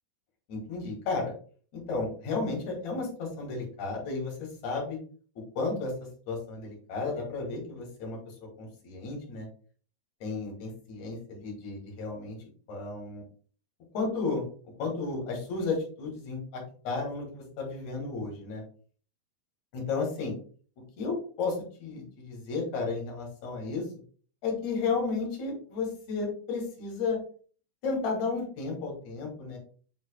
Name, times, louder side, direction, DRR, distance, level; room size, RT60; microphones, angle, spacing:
voice 1, 0.5-1.3 1.7-5.0 5.5-5.9 6.3-8.2 8.6-9.5 10.2-12.4 12.7-13.2 13.9-14.4 14.8-18.6 19.7-20.3 21.0-23.8 24.4-27.2 27.8-29.6, left 4 dB, 50° left, -1 dB, 3.3 m, -33 dB
8.0 x 4.0 x 3.5 m, 0.43 s
omnidirectional pair, 4.7 m